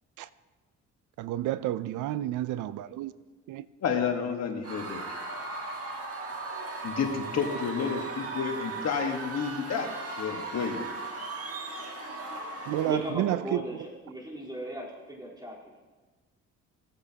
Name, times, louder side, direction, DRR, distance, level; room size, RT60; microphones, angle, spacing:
voice 1, 1.2-3.1 3.5-3.6 12.7-13.4, right 13 dB, 85° right, 0.5 m, -30 dB
voice 2, 3.8-5.0 6.8-9.9 10.2-10.9, left 6 dB, 60° left, 1.5 m, -30 dB
Screaming / Cheering / Crowd, 4.6-13.2, right 3 dB, 50° right, 1.6 m, -37 dB
voice 3, 12.9-15.8, equal, 15° right, 3.8 m, -37 dB
17.0 x 8.2 x 2.9 m
cardioid pair, 90°, 30 cm